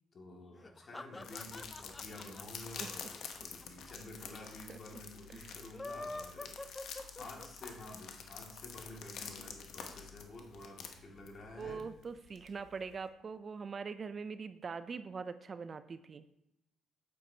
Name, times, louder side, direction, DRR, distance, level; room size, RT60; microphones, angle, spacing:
voice 1, 0.1-11.8, left 1 dB, 50° left, 0 dB, 2.1 m, -51 dB
sound 1, 0.6-3.9 4.2-4.3 4.5-4.6 5.6-7.7, left 2 dB, 20° left, 0.4 m, -46 dB
sound 2, 1.2-12.9, left 6 dB, 75° left, 0.9 m, -48 dB
voice 2, 11.6-16.2, right 5 dB, 40° right, 12 dB, 0.4 m, -42 dB
8.4 x 7.7 x 2.8 m, 0.85 s
cardioid pair, 90°, 0 cm